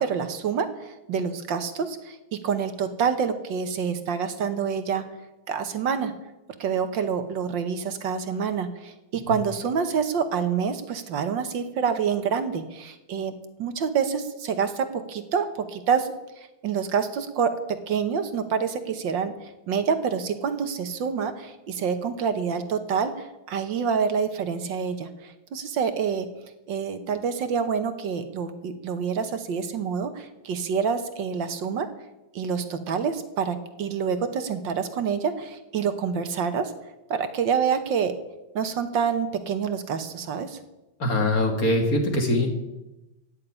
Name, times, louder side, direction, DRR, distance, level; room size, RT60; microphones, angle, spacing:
voice 1, 0.0-2.2 2.4-5.0 5.5-6.1 6.6-13.3 13.6-16.1 16.4-26.3 26.7-31.9 32.3-36.7 37.1-38.1 38.5-40.6, right 6 dB, 65° right, 9 dB, 1.7 m, -27 dB
voice 2, 41.0-42.5, left 1 dB, 45° left, 4 dB, 2.4 m, -22 dB
16.0 x 6.7 x 9.8 m, 0.96 s
omnidirectional pair, 2.2 m